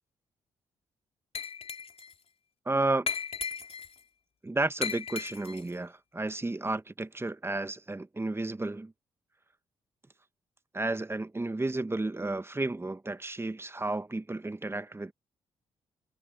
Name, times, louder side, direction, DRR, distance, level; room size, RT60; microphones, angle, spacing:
Glass, 1.3-2.1 3.1-4.0 4.8-5.7, left 6 dB, 50° left, 5.4 m, -36 dB
voice 1, 2.6-3.1 4.4-8.9 10.7-15.1, right 2 dB, 20° right, 1.4 m, -32 dB
hypercardioid pair, 45°, 13 cm